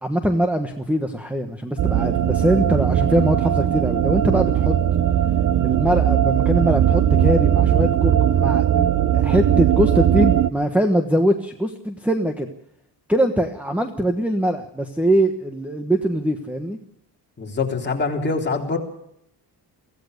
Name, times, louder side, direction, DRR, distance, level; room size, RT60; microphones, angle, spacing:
voice 1, 0.0-4.7 5.6-8.9 9.1-12.5 13.1-16.8, equal, 5° right, 6 dB, 1.3 m, -22 dB
sound 1, 1.8-10.5, right 10 dB, 50° right, 0.8 m, -19 dB
voice 2, 17.4-18.8, left 4 dB, 25° left, 0 dB, 3.8 m, -24 dB
24.5 x 16.5 x 6.6 m, 0.75 s
wide cardioid pair, 175°, 41 cm